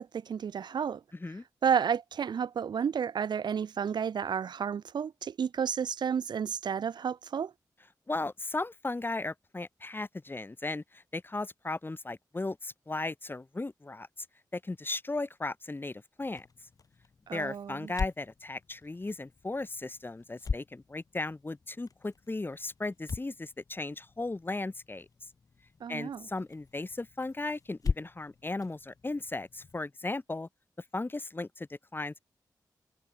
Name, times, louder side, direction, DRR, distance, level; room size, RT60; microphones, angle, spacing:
voice 1, 0.0-1.0 1.6-7.5 17.3-17.9 25.8-26.3, right 7 dB, 80° right, 0.7 m, -31 dB
voice 2, 8.1-14.1 14.5-16.4 17.3-25.1 25.9-30.5 30.9-32.2, left 2 dB, 30° left, 1.2 m, -36 dB
sound 1, 16.2-29.8, left 5 dB, 55° left, 0.8 m, -41 dB
cardioid pair, 55°, 7 cm